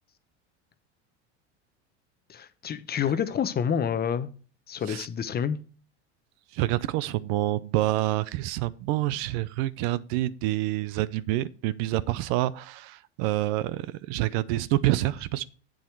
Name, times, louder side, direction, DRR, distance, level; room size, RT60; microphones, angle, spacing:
voice 1, 2.3-4.3 4.7-5.6, left 8 dB, 25° left, 0.8 m, -28 dB
voice 2, 6.5-15.4, right 16 dB, 60° right, 0.6 m, -27 dB
8.0 x 7.2 x 4.5 m
hypercardioid pair, 100°, 35 cm